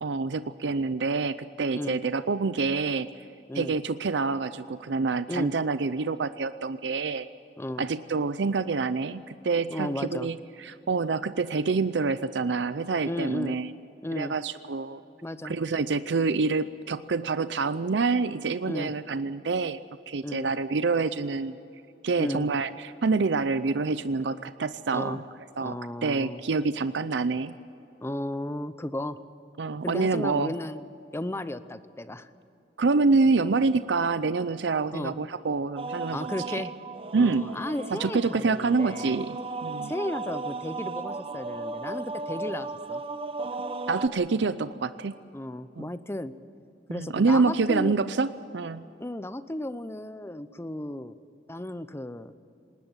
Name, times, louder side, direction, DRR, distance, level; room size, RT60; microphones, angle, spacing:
voice 1, 0.0-3.3 3.5-7.3 7.8-13.7 14.2-15.0 15.4-19.8 20.1-21.6 22.0-25.2 25.6-27.6 29.6-30.5 32.8-36.6 37.1-37.4 37.9-39.9 43.9-45.1 45.8-45.9 46.9-48.8, right 4 dB, 80° right, 13 dB, 0.6 m, -27 dB
voice 2, 9.7-10.3 13.1-13.6 14.0-14.3 15.2-15.5 18.6-18.9 20.2-20.5 22.2-22.5 24.9-25.2 25.6-26.4 28.0-29.2 29.8-30.8 31.1-32.3 34.9-35.1 36.1-36.7 37.2-39.2 39.8-43.0 45.3-46.3 46.9-48.0 49.0-51.2 51.5-52.3, left 1 dB, 15° left, 13 dB, 0.7 m, -34 dB
sound 1, 35.8-44.1, right 3 dB, 35° right, 0.8 m, -36 dB
19.5 x 19.0 x 8.9 m, 2.8 s
head